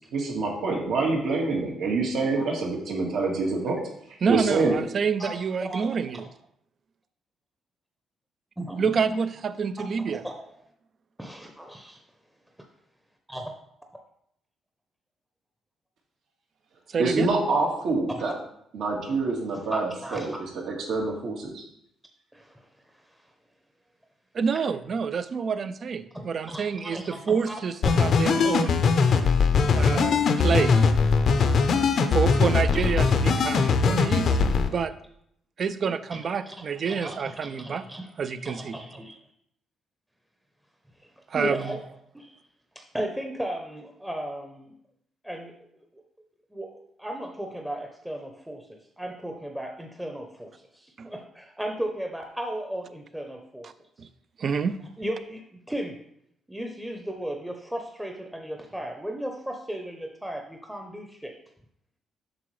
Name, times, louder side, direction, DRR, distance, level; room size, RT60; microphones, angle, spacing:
voice 1, 0.1-3.8 4.3-4.7 17.0-18.3 18.7-19.9 20.1-20.3 20.7-21.6, right 3 dB, 75° right, -1 dB, 1.8 m, -26 dB
voice 2, 4.2-6.3 8.8-10.2 16.9-17.3 24.3-28.9 29.7-30.9 32.1-34.4 34.7-34.9 35.6-37.9 38.2-38.8 41.3-41.7 51.0-51.1 53.6-53.7 54.0-54.1 54.4-54.7, right 6 dB, 50° right, 13 dB, 0.4 m, -28 dB
voice 3, 5.2-6.0 8.6-9.2 10.1-10.3 11.2-12.0 13.3-13.5 18.1-18.3 19.7-20.4 22.3-22.7 22.9-23.3 26.1-27.5 27.8-27.9 28.4-28.6 31.4-31.5 34.4-34.5 36.1-39.2 41.0-41.8 42.1-42.4 42.7-44.7 45.2-45.5 45.9-46.0 46.5-53.7 55.0-56.0 56.5-61.3, right 1 dB, 5° right, 3 dB, 0.7 m, -36 dB
sound 1, 27.8-34.7, left 5 dB, 60° left, 0.7 m, -21 dB
7.5 x 5.9 x 3.2 m, 0.73 s
cardioid pair, 90°, 0 cm